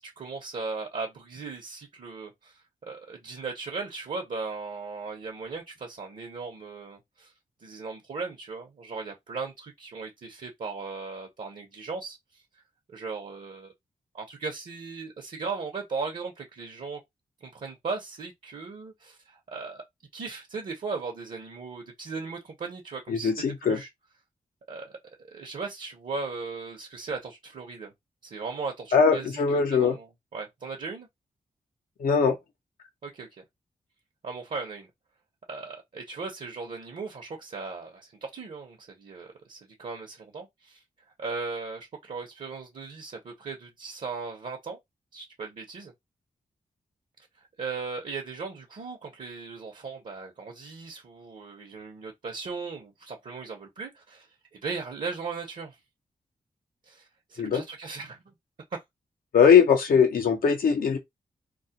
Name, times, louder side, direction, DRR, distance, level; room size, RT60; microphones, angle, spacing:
voice 1, 0.0-2.5 2.8-7.3 7.6-12.2 12.9-13.7 14.1-17.0 17.4-19.8 20.1-23.9 24.7-24.9 25.3-27.9 28.2-31.1 33.0-33.3 34.2-34.9 35.5-40.8 41.2-44.8 45.1-45.9 47.6-54.3 54.5-55.7 56.9-57.0 57.3-58.3 58.7-58.8, right 4 dB, 60° right, 0.8 m, -37 dB
voice 2, 23.1-23.8 28.9-30.0 32.0-32.4 57.4-57.6 59.3-61.0, left 6 dB, 75° left, 0.7 m, -20 dB
2.3 x 2.0 x 2.8 m
cardioid pair, 45°, 15 cm